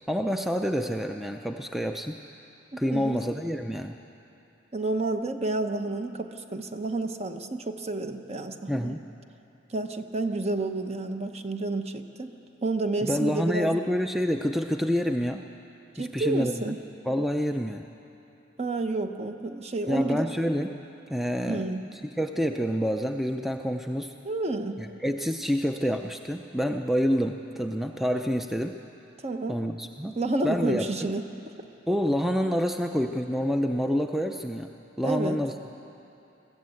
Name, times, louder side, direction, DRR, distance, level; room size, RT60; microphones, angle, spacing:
voice 1, 0.1-2.2 2.8-4.0 8.7-9.0 13.0-15.5 16.0-16.8 17.1-17.9 19.9-20.7 21.1-21.7 22.2-24.1 24.8-28.8 29.5-30.2 30.4-31.1 31.9-35.5, equal, ahead, 5 dB, 0.5 m, -28 dB
voice 2, 2.7-3.2 4.7-9.0 9.7-12.3 12.6-13.7 15.9-16.8 18.6-20.2 21.5-21.8 24.2-24.8 29.2-29.6 30.2-31.3 35.0-35.4, right 2 dB, 35° right, 7 dB, 0.9 m, -30 dB
21.5 x 15.0 x 8.4 m, 2.9 s
head